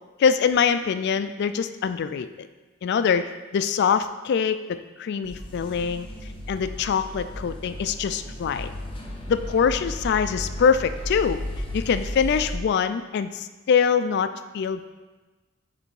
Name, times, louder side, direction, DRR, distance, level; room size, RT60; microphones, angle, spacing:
voice 1, 0.2-2.5 2.8-6.1 6.5-8.7 9.3-11.4 11.7-14.9, left 6 dB, 55° left, 11 dB, 0.3 m, -24 dB
sound 1, 5.2-12.5, equal, 25° left, 0.8 m, -35 dB
6.6 x 3.3 x 4.6 m, 1.2 s
head